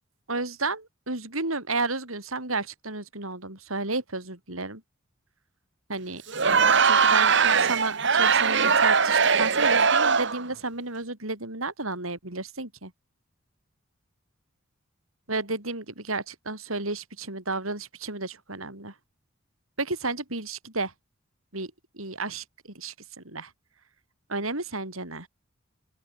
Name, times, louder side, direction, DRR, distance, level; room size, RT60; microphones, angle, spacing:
voice 1, 0.3-4.8 5.9-6.2 6.8-12.9 15.3-18.9 19.8-20.9 21.5-23.5 24.3-25.3, right 3 dB, 80° right, 7.3 m, -32 dB
Crowd, 6.3-10.5, right 5 dB, 60° right, 2.1 m, -21 dB
open air
head